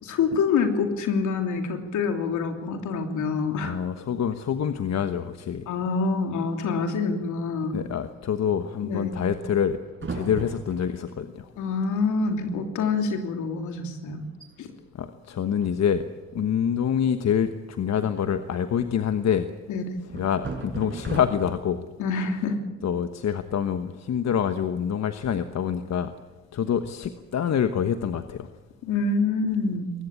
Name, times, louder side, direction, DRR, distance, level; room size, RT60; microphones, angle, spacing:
voice 1, 0.0-3.8 5.7-7.8 8.8-9.2 11.6-14.2 14.6-14.7 19.7-19.8 22.0-22.7 28.8-29.9, left 4 dB, 80° left, 5 dB, 3.2 m, -26 dB
voice 2, 3.6-5.6 7.7-9.8 10.1-11.5 15.0-16.1 16.3-17.5 17.8-19.5 20.1-21.8 22.8-26.1 26.5-28.5, left 8 dB, 60° left, 9 dB, 1.3 m, -26 dB
sound 1, 9.9-11.1 12.0-12.1 12.3-12.7 13.0-13.2 13.7-13.8 14.2-14.5 15.6-16.2 18.2-19.1 20.1-21.7, right 4 dB, 40° right, 6.7 m, -37 dB
22.0 x 19.5 x 8.6 m, 1.2 s
supercardioid pair, 50°, 30 cm